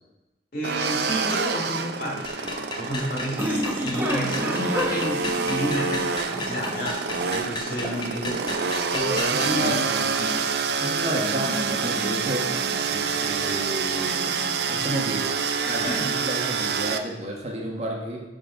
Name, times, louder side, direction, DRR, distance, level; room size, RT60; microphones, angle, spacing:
voice 1, 0.5-8.6 8.9-10.4 15.8-16.1, equal, 50° left, -3 dB, 2.1 m, -31 dB
sound 1, 0.6-17.0, right 5 dB, 60° right, 0.5 m, -27 dB
sound 2, 2.0-15.6, equal, 10° right, 1.0 m, -34 dB
sound 3, 2.2-9.6, left 1 dB, 25° left, 0.7 m, -35 dB
voice 2, 9.3-9.8 10.8-12.5 12.9-14.1 14.7-15.3 15.6-18.2, right 1 dB, 35° right, -1 dB, 1.2 m, -31 dB
10.5 x 3.8 x 5.0 m, 1.1 s
head